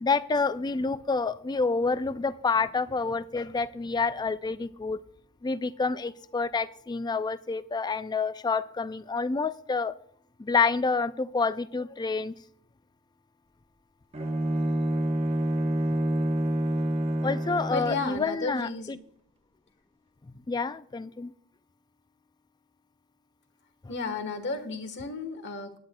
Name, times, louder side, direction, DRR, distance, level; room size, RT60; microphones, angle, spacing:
voice 1, 0.0-5.0 5.4-9.9 10.4-12.3 17.2-18.7 20.5-21.3, left 4 dB, 20° left, 14 dB, 0.3 m, -28 dB
Bowed string instrument, 14.1-18.2, right 1 dB, 30° right, 0.9 m, -27 dB
voice 2, 17.7-18.9 23.9-25.8, left 3 dB, 55° left, 8 dB, 1.3 m, -33 dB
20.0 x 10.5 x 2.2 m, 0.64 s
head